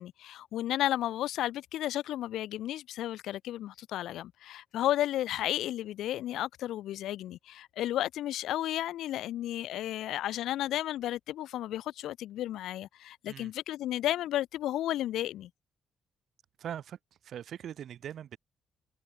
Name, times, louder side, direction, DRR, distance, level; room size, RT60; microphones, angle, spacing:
voice 1, 0.0-15.5, left 13 dB, 80° left, 0.4 m, -33 dB
voice 2, 16.6-18.4, right 9 dB, 65° right, 1.5 m, -41 dB
cardioid pair, 90°, 0 cm